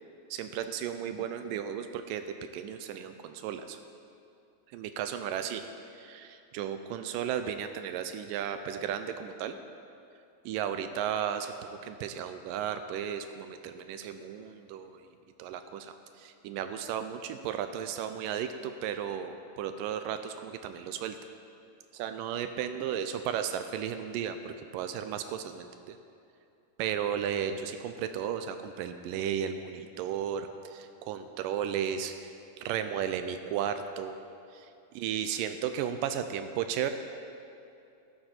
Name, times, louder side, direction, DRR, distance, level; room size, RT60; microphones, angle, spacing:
voice 1, 0.3-3.8 4.7-5.6 5.9-9.6 10.5-15.1 15.4-21.2 21.9-26.0 26.8-34.2 34.5-36.9, right 9 dB, 80° right, 8 dB, 2.0 m, -34 dB
14.0 x 12.0 x 4.4 m, 2.7 s
omnidirectional pair, 4.3 m